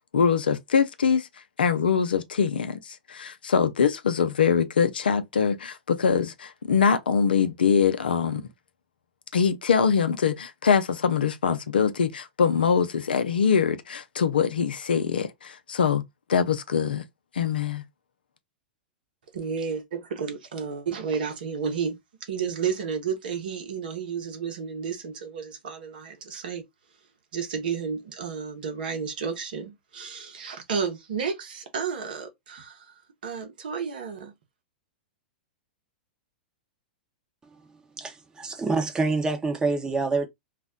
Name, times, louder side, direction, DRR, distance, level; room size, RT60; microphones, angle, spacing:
voice 1, 0.1-1.3 1.6-8.4 9.3-16.0 16.3-17.0 17.3-17.8, left 6 dB, 80° left, 0.5 m, -23 dB
voice 2, 19.3-26.6 27.3-34.3, right 6 dB, 70° right, 0.9 m, -32 dB
voice 3, 38.0-40.3, right 3 dB, 15° right, 0.8 m, -26 dB
2.4 x 2.1 x 3.6 m
hypercardioid pair, 105°, 5 cm